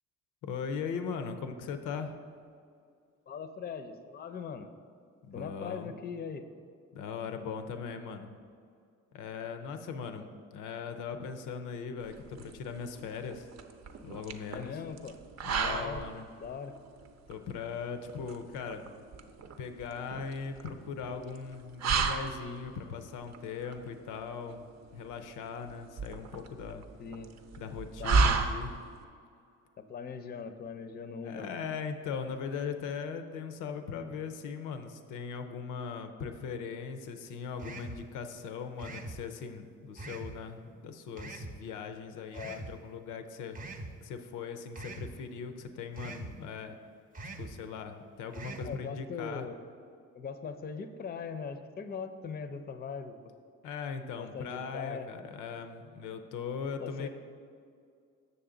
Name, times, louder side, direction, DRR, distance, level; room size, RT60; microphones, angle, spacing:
voice 1, 0.4-2.2 5.2-5.9 6.9-8.4 9.1-13.5 14.0-14.8 15.4-16.3 17.3-18.9 19.6-26.8 27.6-28.8 31.2-43.6 44.0-46.8 47.3-49.5 53.6-57.1, left 6 dB, 90° left, 8 dB, 0.6 m, -39 dB
voice 2, 3.3-4.7 5.3-6.5 14.5-15.2 15.6-16.0 16.4-16.7 27.0-27.3 28.0-28.4 29.8-31.5 42.3-42.6 48.6-49.5 50.1-53.3 54.2-55.1 56.8-57.1, left 6 dB, 30° left, 10 dB, 0.5 m, -40 dB
sound 1, 12.0-29.0, right 4 dB, 60° right, 0.6 m, -34 dB
sound 2, 37.6-38.0 38.8-39.2 40.0-40.3 41.2-41.5 42.3-42.7 43.6-43.9 44.8-45.1 46.0-46.3 47.1-47.5 48.3-48.7, right 2 dB, 30° right, 0.7 m, -42 dB
7.0 x 6.6 x 3.8 m, 2.3 s
cardioid pair, 90°, 30 cm